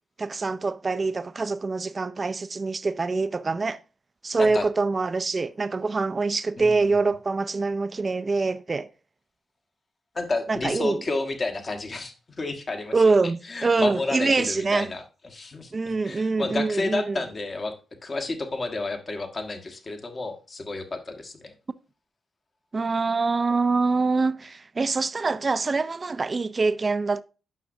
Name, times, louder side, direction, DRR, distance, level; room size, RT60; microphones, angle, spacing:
voice 1, 0.2-3.8 4.2-8.9 10.5-11.0 12.9-14.9 15.7-17.2 22.7-27.2, right 3 dB, 40° right, 0.5 m, -25 dB
voice 2, 6.6-7.0 10.1-13.1 13.5-17.7 18.0-21.5, left 3 dB, 45° left, 1.5 m, -31 dB
9.6 x 5.9 x 2.7 m
supercardioid pair, 50°, 0 cm